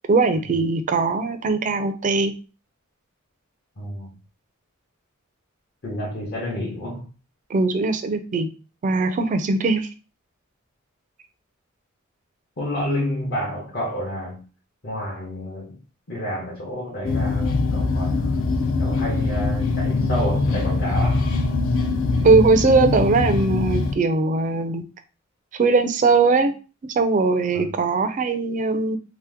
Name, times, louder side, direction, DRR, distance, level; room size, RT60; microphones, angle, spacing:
voice 1, 0.1-2.3 7.5-8.5 8.8-9.9 22.2-24.8 25.6-26.5 27.0-29.0, right 3 dB, 40° right, 0.4 m, -20 dB
voice 2, 3.8-4.1 5.8-7.1 12.6-14.4 14.8-15.8 16.1-18.4 18.8-21.3 27.5-27.6, equal, 50° left, 0.8 m, -29 dB
sound 1, 17.0-24.0, left 3 dB, 65° left, 0.4 m, -22 dB
2.8 x 2.0 x 3.4 m
head